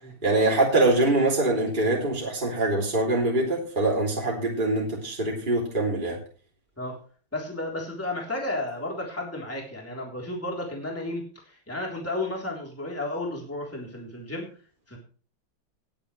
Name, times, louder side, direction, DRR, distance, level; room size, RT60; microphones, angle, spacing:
voice 1, 0.2-6.2, right 2 dB, 25° right, -2 dB, 3.2 m, -24 dB
voice 2, 7.3-14.5 14.9-15.0, left 2 dB, 5° left, -1 dB, 3.5 m, -33 dB
19.0 x 8.8 x 3.3 m, 0.40 s
omnidirectional pair, 2.2 m